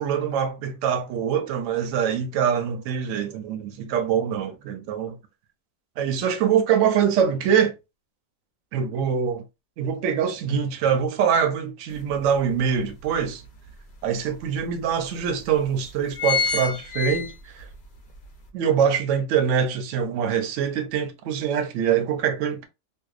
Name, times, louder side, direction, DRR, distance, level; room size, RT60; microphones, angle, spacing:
voice 1, 0.0-5.2 6.0-7.7 8.7-9.4 9.8-13.4 14.0-17.6 18.5-22.7, right 7 dB, 70° right, 0.9 m, -24 dB
sound 1, 11.9-12.0 12.5-13.7 14.3-14.4 14.7-14.8 15.4-15.6 15.9-17.7 18.1-18.2, left 5 dB, 50° left, 0.6 m, -27 dB
2.6 x 2.1 x 2.3 m
omnidirectional pair, 1.4 m